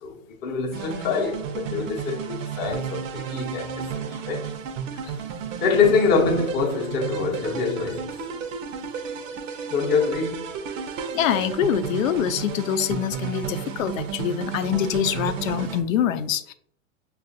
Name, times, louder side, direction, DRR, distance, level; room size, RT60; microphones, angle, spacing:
voice 1, 0.0-4.5 5.6-8.1 9.7-10.5, left 5 dB, 25° left, 0.7 m, -25 dB
sound 1, 0.7-15.8, right 7 dB, 75° right, 0.7 m, -33 dB
voice 2, 11.1-16.5, left 9 dB, 85° left, 0.6 m, -25 dB
5.4 x 2.4 x 2.6 m
supercardioid pair, 150°, 39 cm